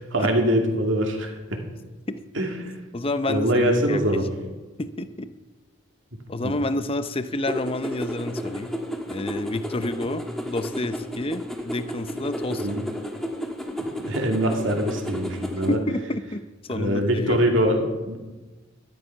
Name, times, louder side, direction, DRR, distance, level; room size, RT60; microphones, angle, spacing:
voice 1, 0.0-1.6 2.3-2.7 3.3-4.2 6.4-6.5 12.6-12.9 14.0-15.8 16.7-18.2, equal, 60° right, 2 dB, 2.4 m, -23 dB
voice 2, 2.9-4.3 4.8-5.3 6.3-8.7 9.1-12.8 15.7-17.4, left 1 dB, 25° left, 11 dB, 0.6 m, -29 dB
sound 1, 7.5-15.8, equal, ahead, 1.5 m, -32 dB
12.5 x 12.5 x 5.8 m, 1.2 s
head